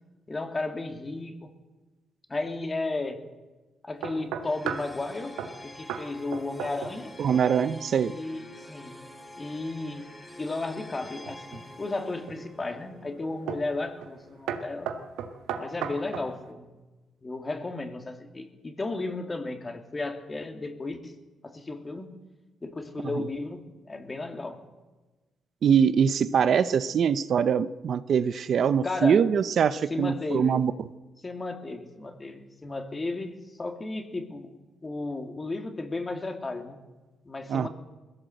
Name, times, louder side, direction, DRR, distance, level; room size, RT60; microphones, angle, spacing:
voice 1, 0.3-1.5 2.3-3.2 3.8-7.1 8.1-8.9 9.4-10.1 10.4-14.9 15.6-16.7 17.2-21.1 21.4-22.1 22.6-24.6 28.8-29.2 29.9-30.6 31.2-34.5 34.8-36.8 37.2-37.7, left 2 dB, 25° left, 6 dB, 2.7 m, -34 dB
sound 1, 4.0-4.9 5.4-5.6 5.9-6.1 6.3-7.0 7.3-7.7 11.0-11.7 12.3-12.7 13.5-13.7 14.0-14.2 14.5-16.3, right 8 dB, 90° right, 1.7 m, -35 dB
sound 2, 4.4-15.5, left 1 dB, 10° left, 3.5 m, -48 dB
voice 2, 7.2-8.1 25.6-30.7 37.5-37.7, right 7 dB, 60° right, 14 dB, 0.7 m, -23 dB
21.0 x 16.0 x 7.9 m, 1.2 s
cardioid pair, 90°, 0 cm